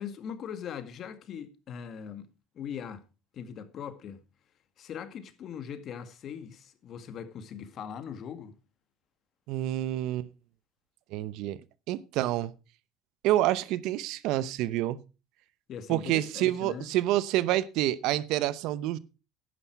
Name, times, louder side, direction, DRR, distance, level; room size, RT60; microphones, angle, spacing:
voice 1, 0.0-2.3 2.5-3.0 3.3-4.2 4.8-8.5 15.7-16.9, left 8 dB, 55° left, 1.9 m, -40 dB
voice 2, 9.5-10.3 11.1-11.6 11.9-12.5 13.2-15.0 15.9-19.0, right 14 dB, 70° right, 0.8 m, -28 dB
11.5 x 9.7 x 4.6 m
supercardioid pair, 85°, 0 cm